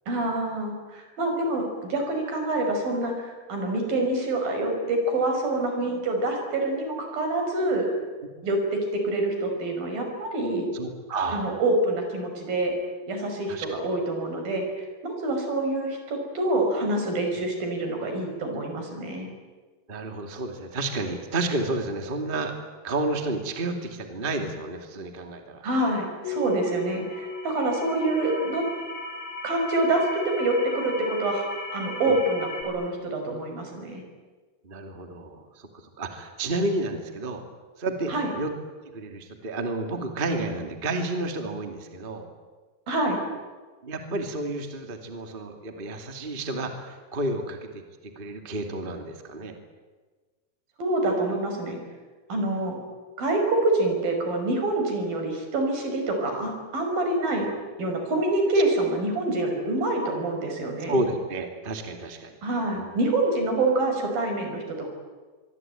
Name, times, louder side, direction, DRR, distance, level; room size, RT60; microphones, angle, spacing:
voice 1, 0.1-7.9 8.4-10.7 11.3-12.7 13.1-19.3 25.6-28.7 29.4-31.5 31.7-34.0 38.1-38.3 42.9-43.2 50.8-51.8 52.3-52.8 53.2-57.5 57.8-61.0 62.4-64.9, right 2 dB, 70° right, 4 dB, 7.0 m, -26 dB
voice 2, 10.7-11.5 13.5-13.8 19.9-22.5 22.8-25.7 32.0-32.2 34.6-35.7 36.0-37.4 37.8-38.5 38.9-42.3 43.8-49.5 60.9-62.4 62.7-62.9, right 2 dB, 15° right, 4 dB, 2.2 m, -31 dB
sound 1, 26.2-32.6, left 1 dB, 50° left, 5.9 m, -35 dB
25.5 x 23.0 x 9.2 m, 1.4 s
omnidirectional pair, 4.2 m